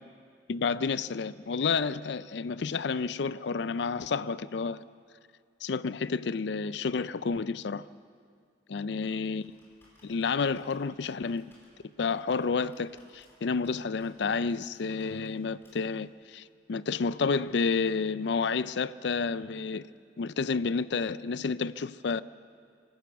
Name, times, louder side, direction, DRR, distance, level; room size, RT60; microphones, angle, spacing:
voice 1, 0.5-4.8 5.6-7.8 8.7-9.6 10.0-11.4 12.0-19.9 20.2-22.2, left 5 dB, 65° left, 0.4 m, -30 dB
Computer keyboard, 9.1-16.1, left 1 dB, 15° left, 4.6 m, -64 dB
24.5 x 13.0 x 8.1 m
head